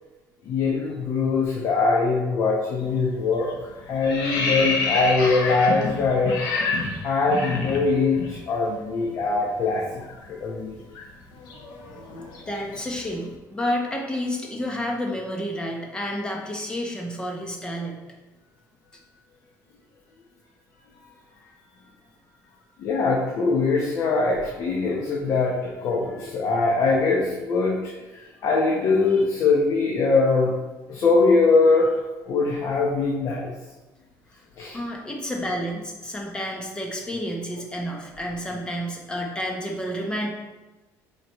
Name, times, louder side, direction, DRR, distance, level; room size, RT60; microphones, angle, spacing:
voice 1, 0.5-3.5 3.9-6.4 7.0-10.0 10.3-10.8 22.8-30.5 30.9-31.9 32.2-33.5 34.6-34.8, left 3 dB, 50° left, -2 dB, 1.0 m, -22 dB
sound 1, 2.8-3.1 3.4-8.3 8.6-8.8 9.1-13.2, left 3 dB, 90° left, 1.2 m, -29 dB
voice 2, 12.5-18.0 29.1-29.2 34.7-40.3, equal, 15° left, 0 dB, 1.0 m, -30 dB
7.8 x 5.0 x 3.1 m, 1.1 s
cardioid pair, 160°, 7 cm